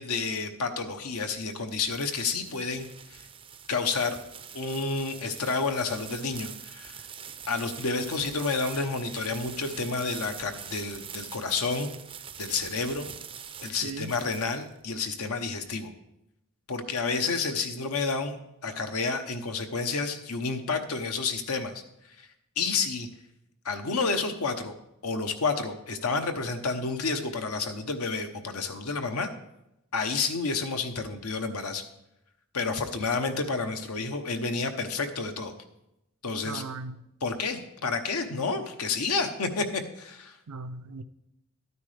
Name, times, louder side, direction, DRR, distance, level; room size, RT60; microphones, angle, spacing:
voice 1, 0.0-2.9 3.7-4.2 4.5-6.9 7.5-11.9 12.4-13.1 13.6-15.9 16.7-18.4 18.6-21.7 22.6-23.1 23.6-24.7 25.0-29.3 29.9-31.8 32.5-35.5 36.2-36.6 37.2-40.4, left 4 dB, 75° left, 0.9 m, -30 dB
sound 1, 1.2-15.0, right 7 dB, 25° right, 0.5 m, -44 dB
voice 2, 13.8-14.2 36.4-37.0 40.5-41.0, right 3 dB, 75° right, 0.5 m, -37 dB
12.0 x 9.5 x 3.4 m
head